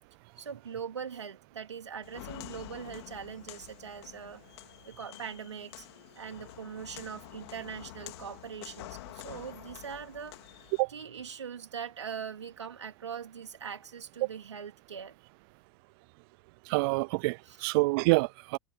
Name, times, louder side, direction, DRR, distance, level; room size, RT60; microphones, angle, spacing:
voice 1, 0.3-4.4 4.8-5.9 6.2-10.4 10.9-15.2 17.5-17.6, right 7 dB, 90° right, 3.2 m, -41 dB
Walk footsteps, 2.0-10.8, left 18 dB, 65° left, 2.7 m, -48 dB
voice 2, 16.7-18.6, right 27 dB, 60° right, 0.5 m, -27 dB
hypercardioid pair, 90°, 14 cm